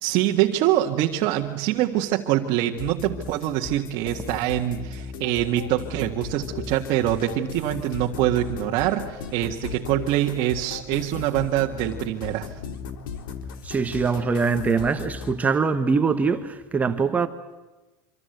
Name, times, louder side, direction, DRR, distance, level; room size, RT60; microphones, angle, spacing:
voice 1, 0.0-12.5, right 13 dB, 45° right, 1.8 m, -24 dB
sound 1, 2.8-15.3, left 6 dB, 85° left, 3.5 m, -37 dB
voice 2, 13.6-17.3, right 5 dB, 15° right, 1.2 m, -23 dB
26.5 x 25.5 x 8.0 m
supercardioid pair, 165°, 11 cm